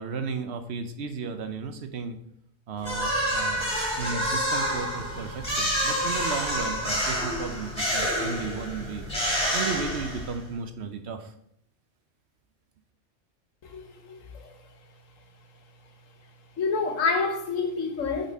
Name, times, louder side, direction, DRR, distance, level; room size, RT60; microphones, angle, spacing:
voice 1, 0.0-2.2 2.7-3.7 4.0-9.1 9.5-11.3, right 5 dB, 65° right, 0.9 m, -34 dB
sound 1, 2.8-10.5, equal, 25° left, 2.9 m, -28 dB
voice 2, 16.6-18.3, left 4 dB, 85° left, 1.4 m, -27 dB
8.3 x 4.1 x 4.1 m
omnidirectional pair, 1.3 m